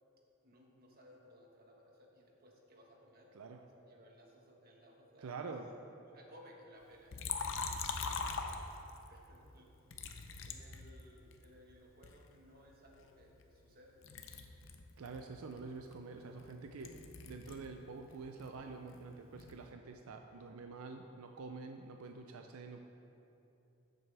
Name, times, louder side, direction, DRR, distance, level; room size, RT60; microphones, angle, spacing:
voice 1, 0.4-3.3 3.7-5.5 6.1-9.7 10.0-14.0, equal, 45° right, 0 dB, 1.4 m, -61 dB
voice 2, 5.2-5.7 15.0-17.0 17.2-22.9, right 4 dB, 90° right, 5 dB, 0.5 m, -47 dB
Liquid, 7.1-9.1 9.9-11.4 12.0-13.8 14.0-17.7 18.0-19.6, left 5 dB, 65° left, 0.7 m, -43 dB
13.0 x 7.5 x 3.4 m, 2.9 s
head